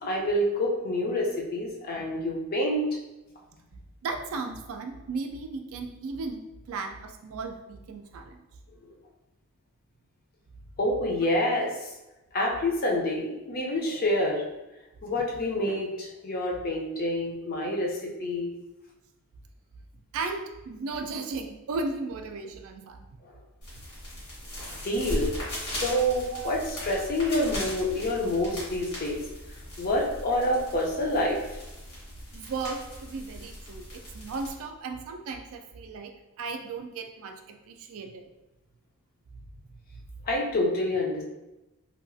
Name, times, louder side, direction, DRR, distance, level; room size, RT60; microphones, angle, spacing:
voice 1, 0.0-2.9 10.8-11.9 12.3-14.4 15.0-18.5 24.8-25.3 25.6-29.2 29.8-31.4 40.3-41.2, left 1 dB, 40° left, -1 dB, 0.5 m, -27 dB
voice 2, 4.0-8.4 20.1-23.0 26.3-26.6 32.3-38.3, right 3 dB, 65° right, 5 dB, 0.3 m, -36 dB
sound 1, 23.6-34.5, equal, 75° left, 1.4 m, -38 dB
2.8 x 2.3 x 2.6 m, 1.0 s
head